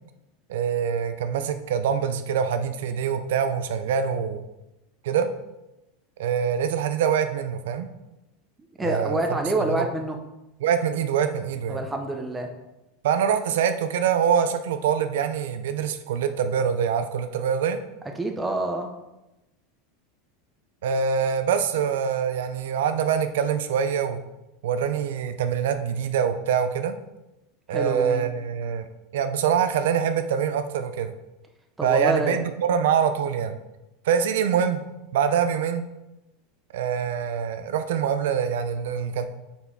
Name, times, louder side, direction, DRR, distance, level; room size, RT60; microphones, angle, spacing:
voice 1, 0.5-4.4 5.0-5.3 6.2-7.9 8.8-9.4 9.7-9.9 10.6-11.8 13.0-17.8 20.8-24.2 24.6-27.0 27.7-28.8 29.1-31.1 31.8-33.5 34.0-34.8 35.1-35.8 36.7-39.2, right 7 dB, 85° right, 9 dB, 0.5 m, -24 dB
voice 2, 8.8-10.2 11.7-12.5 18.2-18.9 27.7-28.2 31.8-32.4, right 2 dB, 10° right, 3 dB, 0.6 m, -27 dB
5.6 x 4.3 x 4.6 m, 0.96 s
supercardioid pair, 160°, 0 cm